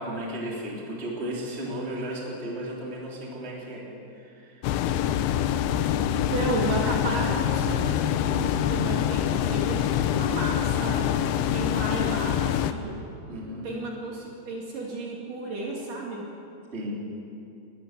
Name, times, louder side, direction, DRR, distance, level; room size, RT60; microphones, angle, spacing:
voice 1, 0.0-3.9 4.2-5.0 13.3-13.6 16.7-17.0, right 1 dB, 15° right, -3 dB, 3.0 m, -35 dB
sound 1, 4.6-12.7, left 10 dB, 80° left, 2.6 m, -25 dB
voice 2, 6.3-11.1 11.5-13.0 13.6-16.3, right 2 dB, 55° right, -2 dB, 3.6 m, -33 dB
19.5 x 14.0 x 9.6 m, 2.6 s
omnidirectional pair, 5.0 m